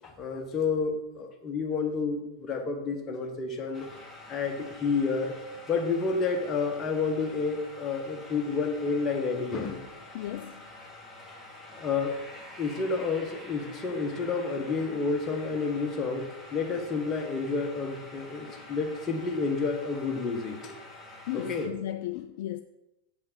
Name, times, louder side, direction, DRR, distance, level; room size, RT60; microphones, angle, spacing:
voice 1, 0.0-3.8 4.3-5.3 5.7-9.8 11.7-12.2 12.6-20.8 21.3-21.7, left 4 dB, 25° left, 1.4 m, -30 dB
sound 1, 3.7-21.7, left 2 dB, ahead, 1.7 m, -47 dB
voice 2, 10.1-10.7 21.3-22.6, left 13 dB, 50° left, 0.3 m, -35 dB
7.5 x 5.6 x 6.2 m
figure-of-eight pair, 90°, 0 cm